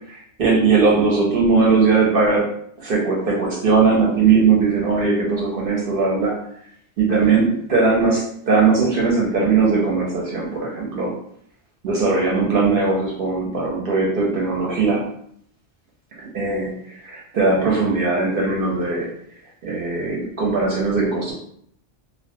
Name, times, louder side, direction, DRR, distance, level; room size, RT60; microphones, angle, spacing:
voice 1, 0.4-6.4 7.0-11.1 11.8-15.1 16.2-19.1 19.6-21.3, right 4 dB, 60° right, -3 dB, 0.7 m, -19 dB
2.3 x 2.1 x 2.6 m, 0.68 s
omnidirectional pair, 1.2 m